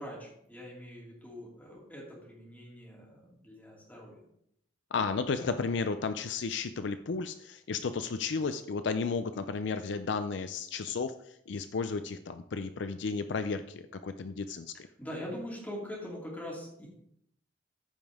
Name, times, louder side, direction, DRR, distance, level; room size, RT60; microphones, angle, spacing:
voice 1, 0.0-4.2 15.0-16.9, equal, 10° left, -4 dB, 2.8 m, -43 dB
voice 2, 4.9-14.9, left 4 dB, 65° left, 10 dB, 0.4 m, -33 dB
14.0 x 5.4 x 3.5 m, 0.73 s
head